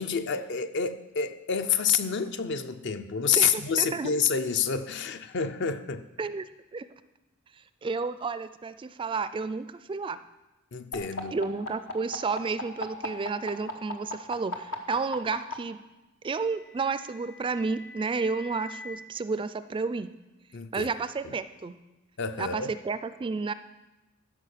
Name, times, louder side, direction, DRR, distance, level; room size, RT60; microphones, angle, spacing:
voice 1, 0.0-6.1 10.7-11.4 20.5-20.9 21.2-21.4 22.2-22.7, left 6 dB, 60° left, 10 dB, 0.6 m, -28 dB
voice 2, 3.4-4.1 6.2-6.9 7.8-10.2 11.3-15.8 16.2-20.1 20.7-21.8 22.4-23.5, right 4 dB, 25° right, 13 dB, 0.3 m, -31 dB
sound 1, 10.9-15.5 16.7-18.9, left 2 dB, 90° left, 1.2 m, -37 dB
12.5 x 5.3 x 6.6 m, 1.0 s
head